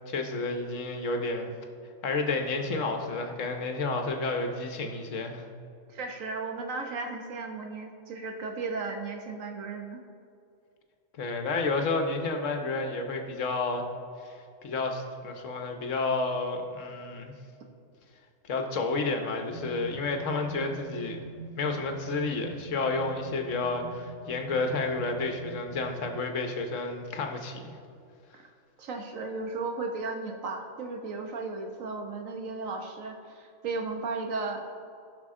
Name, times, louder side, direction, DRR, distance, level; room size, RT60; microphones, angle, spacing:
voice 1, 0.1-1.5 2.0-5.4 11.2-13.9 14.2-14.3 14.6-17.3 18.4-21.2 21.6-27.8, left 3 dB, 75° left, 4 dB, 1.3 m, -30 dB
voice 2, 5.9-10.0 28.3-28.5 28.8-34.7, right 3 dB, 85° right, 3 dB, 1.4 m, -35 dB
sound 1, 19.5-26.3, right 5 dB, 30° right, 0.8 m, -44 dB
16.5 x 5.7 x 3.7 m, 2.5 s
omnidirectional pair, 1.3 m